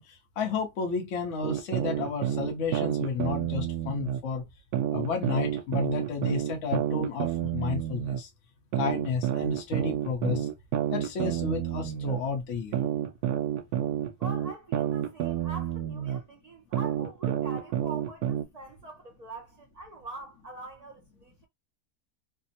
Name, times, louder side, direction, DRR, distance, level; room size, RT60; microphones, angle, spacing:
voice 1, 0.0-4.4 4.9-8.3 8.8-10.5 10.9-12.8, left 4 dB, 60° left, 1.1 m, -32 dB
sound 1, 1.4-4.2 4.7-8.2 8.7-12.2 12.7-16.2 16.7-18.4, right 10 dB, 90° right, 1.1 m, -29 dB
voice 2, 14.2-21.5, right 2 dB, 65° right, 0.4 m, -44 dB
3.3 x 2.0 x 2.6 m
omnidirectional pair, 1.6 m